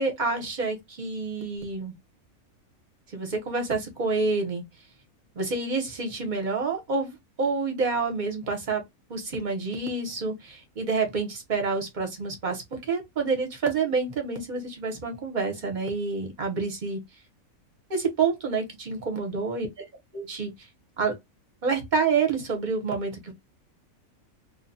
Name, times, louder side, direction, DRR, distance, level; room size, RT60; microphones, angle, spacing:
voice 1, 0.0-1.9 3.1-4.6 5.4-8.8 9.1-17.0 17.9-19.7 20.1-20.5 21.0-21.2 21.6-23.3, right 4 dB, 40° right, 0.8 m, -28 dB
2.5 x 2.2 x 2.6 m
omnidirectional pair, 1.5 m